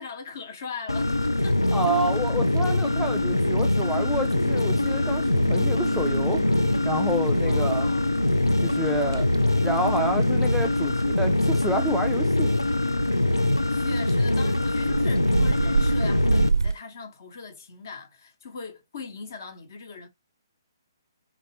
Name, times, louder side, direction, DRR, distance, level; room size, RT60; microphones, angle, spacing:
voice 1, 0.0-1.6 7.4-8.1 13.7-20.1, left 5 dB, 50° left, 1.0 m, -40 dB
sound 1, 0.9-16.5, left 2 dB, 85° left, 0.3 m, -23 dB
sound 2, 1.0-16.7, right 4 dB, 70° right, 0.4 m, -32 dB
voice 2, 1.7-6.5 6.9-7.9 8.6-9.3 9.6-12.5, right 1 dB, ahead, 0.3 m, -29 dB
3.4 x 3.2 x 2.7 m
figure-of-eight pair, 130°, 2 cm